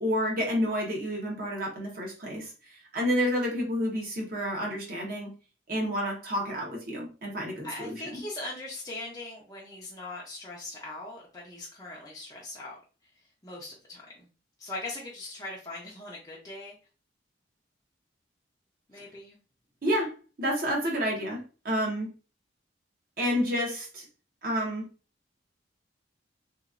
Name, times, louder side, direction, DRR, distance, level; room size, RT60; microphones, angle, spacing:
voice 1, 0.0-2.5 2.9-5.3 5.7-8.2 19.8-20.1 20.4-22.1 23.2-24.0 24.4-24.8, equal, 50° right, -2 dB, 1.0 m, -29 dB
voice 2, 7.6-12.8 13.4-14.3 14.6-16.7 18.9-19.4, left 2 dB, 20° left, -4 dB, 0.5 m, -40 dB
2.9 x 2.4 x 2.4 m, 0.34 s
head